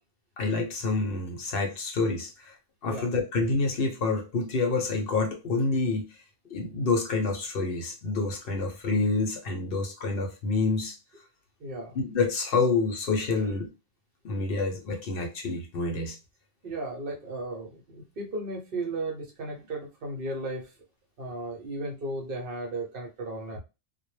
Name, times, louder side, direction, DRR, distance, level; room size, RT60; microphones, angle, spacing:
voice 1, 0.4-2.6 2.8-6.1 6.5-10.9 11.9-13.7 14.2-16.2, left 3 dB, 65° left, 0.8 m, -28 dB
voice 2, 11.6-12.0 13.4-13.5 16.6-20.7 21.2-23.6, right 2 dB, 60° right, 0.9 m, -35 dB
2.1 x 2.1 x 3.0 m
omnidirectional pair, 1.1 m